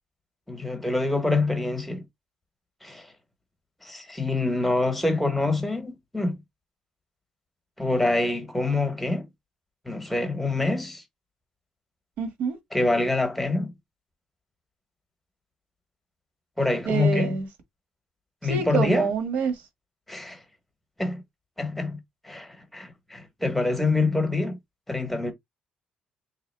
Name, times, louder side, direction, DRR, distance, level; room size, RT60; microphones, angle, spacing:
voice 1, 0.5-2.0 2.8-3.1 3.8-6.4 7.8-9.3 9.8-11.0 12.7-13.7 16.6-17.4 18.4-19.1 20.1-20.4 21.0-21.2 21.6-22.0 22.2-24.6 24.9-25.3, left 2 dB, 5° left, 1.0 m, -25 dB
voice 2, 12.2-12.6 16.8-17.5 18.4-19.5, right 5 dB, 75° right, 1.4 m, -26 dB
3.7 x 2.8 x 3.2 m
cardioid pair, 170°, 3 cm